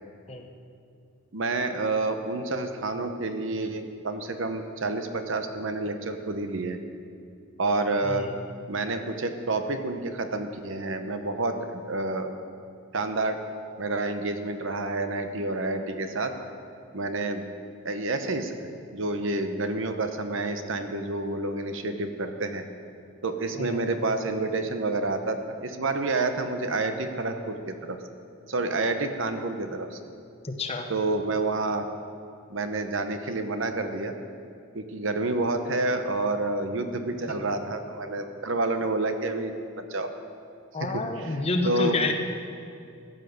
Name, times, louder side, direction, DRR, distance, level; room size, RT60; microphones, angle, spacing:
voice 1, 1.3-6.8 7.6-8.3 8.7-12.3 12.9-13.4 13.8-16.3 16.9-17.4 17.8-22.6 23.2-28.0 28.5-30.0 30.9-31.9 32.5-34.1 34.7-40.1 40.8-42.0, right 2 dB, 60° right, 7 dB, 0.9 m, -29 dB
voice 2, 8.0-8.4 23.6-23.8 30.4-30.9 37.3-37.4 40.7-42.1, left 2 dB, 30° left, 4 dB, 0.9 m, -29 dB
14.5 x 8.4 x 6.7 m, 2.4 s
head